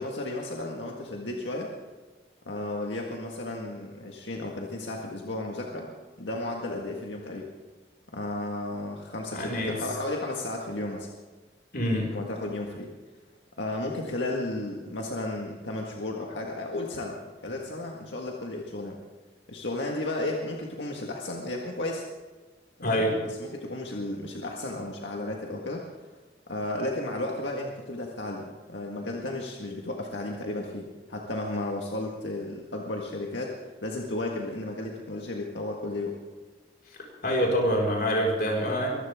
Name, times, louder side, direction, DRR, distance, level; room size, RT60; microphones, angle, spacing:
voice 1, 0.0-1.7 2.5-5.9 6.2-7.5 8.1-11.1 12.1-12.9 13.6-19.0 19.5-22.0 22.8-23.1 23.4-25.8 26.5-36.2, left 2 dB, 85° left, 0 dB, 1.8 m, -33 dB
voice 2, 9.3-9.8 11.7-12.2 22.8-23.2 37.2-38.9, equal, 55° left, -1 dB, 5.2 m, -25 dB
23.5 x 15.0 x 3.7 m, 1.3 s
head